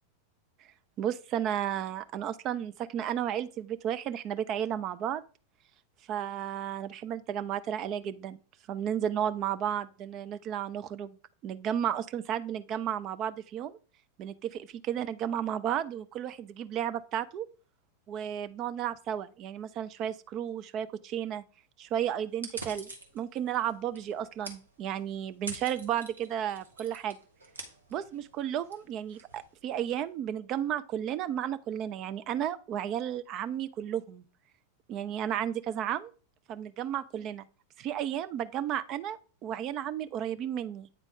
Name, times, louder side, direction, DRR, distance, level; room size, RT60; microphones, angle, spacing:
voice 1, 1.0-5.2 6.1-8.4 8.7-11.2 11.4-13.8 14.2-17.5 18.1-21.4 21.8-22.9 23.1-27.2 27.9-34.2 34.9-36.1 36.5-37.4 37.8-40.9, right 10 dB, 35° right, 0.4 m, -33 dB
sound 1, 22.3-30.1, right 3 dB, 80° right, 1.1 m, -47 dB
8.8 x 3.7 x 3.6 m
figure-of-eight pair, 90°, 0 cm